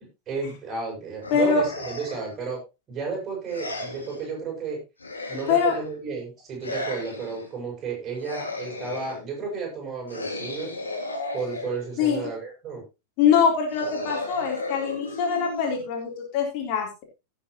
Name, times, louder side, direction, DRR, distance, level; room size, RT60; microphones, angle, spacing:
voice 1, 0.3-2.6 2.9-4.8 5.3-10.7 11.3-12.8, right 5 dB, 30° right, -1 dB, 7.1 m, -33 dB
sound 1, 1.2-2.3 3.5-4.3 5.0-5.9 6.6-7.5 8.2-9.3 10.1-12.1 13.7-16.1, left 2 dB, 75° left, 3.1 m, -35 dB
voice 2, 1.3-1.6 5.5-5.8 12.0-12.3 13.2-16.9, left 6 dB, 45° left, 1 dB, 3.7 m, -23 dB
17.0 x 7.4 x 3.1 m, 0.27 s
figure-of-eight pair, 90°, 0 cm